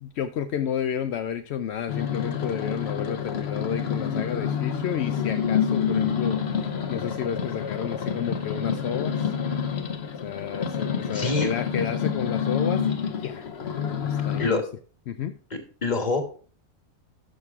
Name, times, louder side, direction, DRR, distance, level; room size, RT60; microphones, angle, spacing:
voice 1, 0.0-6.4 6.9-9.3 10.2-13.5 14.0-14.6 15.1-15.3, left 8 dB, 65° left, 8 dB, 0.7 m, -31 dB
sound 1, 1.9-14.5, left 7 dB, 50° left, 1.0 m, -28 dB
voice 2, 11.1-11.5 14.4-14.6 15.5-16.2, left 3 dB, 30° left, 5 dB, 1.5 m, -25 dB
11.5 x 6.3 x 3.6 m, 0.42 s
omnidirectional pair, 1.5 m